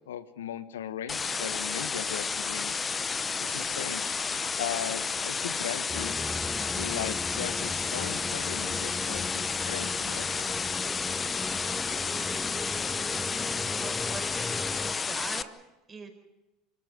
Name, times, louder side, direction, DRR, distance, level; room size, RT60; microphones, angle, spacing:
voice 1, 0.1-2.8 3.4-4.2 4.6-6.1 6.7-10.3, left 10 dB, 90° left, 14 dB, 1.2 m, -38 dB
sound 1, 1.1-15.4, left 5 dB, 25° left, 0.9 m, -31 dB
sound 2, 5.9-14.9, left 2 dB, 10° left, 1.3 m, -38 dB
voice 2, 13.8-15.5 15.9-16.1, right 4 dB, 25° right, 5 dB, 4.8 m, -42 dB
25.0 x 14.0 x 9.4 m, 1.0 s
hypercardioid pair, 85°, 0 cm